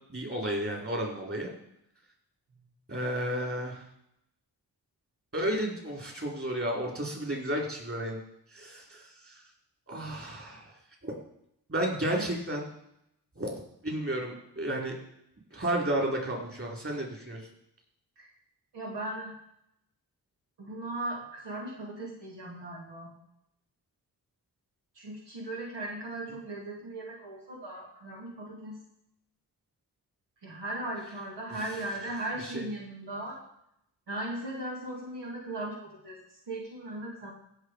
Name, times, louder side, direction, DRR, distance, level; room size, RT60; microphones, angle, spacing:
voice 1, 0.1-1.5 2.9-3.8 5.3-8.2 8.5-9.4 9.9-10.7 11.0-11.2 11.7-12.7 13.4-15.0 15.5-17.4 32.5-32.6, right 1 dB, 35° right, -1 dB, 4.8 m, -32 dB
voice 2, 18.7-19.3 20.6-23.1 24.9-28.8 30.4-33.4 34.1-37.3, right 1 dB, 80° right, -3 dB, 2.5 m, -38 dB
15.5 x 6.1 x 5.0 m, 0.77 s
cardioid pair, 50°, 41 cm